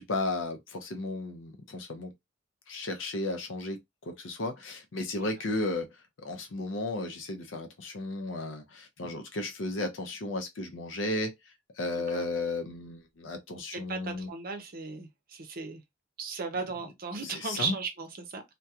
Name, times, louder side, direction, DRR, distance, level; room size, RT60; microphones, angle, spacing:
voice 1, 0.0-2.1 2.7-5.9 6.2-11.3 11.8-14.3 17.2-17.8, left 2 dB, 70° left, 0.6 m, -34 dB
voice 2, 13.7-15.8 16.2-18.4, right 4 dB, 50° right, 0.6 m, -36 dB
2.8 x 2.2 x 2.3 m
head